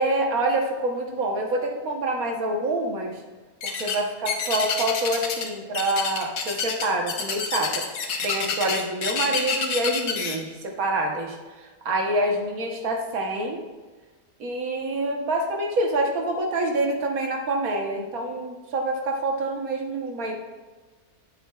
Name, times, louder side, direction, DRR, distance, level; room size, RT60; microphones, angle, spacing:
voice 1, 0.0-3.1 3.6-11.4 11.8-13.6 14.4-20.3, right 2 dB, 75° right, 2 dB, 1.5 m, -26 dB
sound 1, 3.6-4.0 4.3-5.5 5.7-10.4, left 6 dB, 75° left, 1.3 m, -27 dB
9.5 x 7.8 x 2.3 m, 1.3 s
omnidirectional pair, 1.5 m